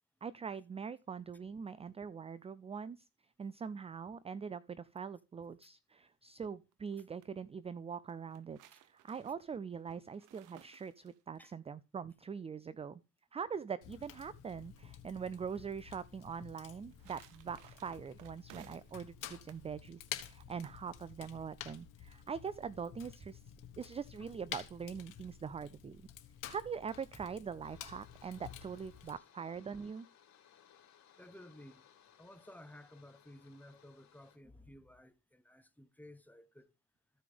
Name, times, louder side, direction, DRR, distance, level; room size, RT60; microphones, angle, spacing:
voice 1, 0.2-3.1 3.4-8.6 9.0-13.0 13.3-23.4 23.8-26.0 26.5-30.1, right 6 dB, 20° right, 0.4 m, -43 dB
sound 1, 6.7-7.3 8.1-11.4 16.5-19.0 19.3-19.7 20.4-20.8, right 13 dB, 80° right, 0.8 m, -61 dB
Fire, 13.8-29.1, left 11 dB, 80° left, 1.4 m, -51 dB
sound 2, 26.9-34.4, left 9 dB, 65° left, 3.0 m, -64 dB
voice 2, 31.2-31.8 32.2-36.7, left 1 dB, 5° left, 0.8 m, -56 dB
14.5 x 5.0 x 3.4 m
cardioid pair, 80°, 31 cm